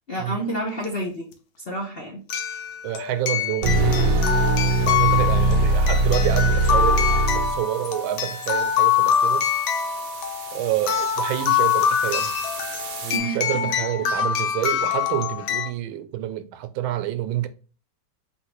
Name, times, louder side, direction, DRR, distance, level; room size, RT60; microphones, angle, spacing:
voice 1, 0.1-1.3 1.7-2.2 13.1-13.4, right 1 dB, 45° left, 0.7 m, -29 dB
sound 1, 0.8-0.9 2.3-15.7, left 8 dB, 85° left, 1.6 m, -24 dB
voice 2, 2.8-4.4 4.8-9.5 10.5-12.3 13.0-17.5, right 13 dB, 85° right, 1.4 m, -28 dB
sound 2, 3.6-13.2, right 2 dB, 65° right, 1.4 m, -24 dB
4.4 x 3.7 x 3.0 m
omnidirectional pair, 2.1 m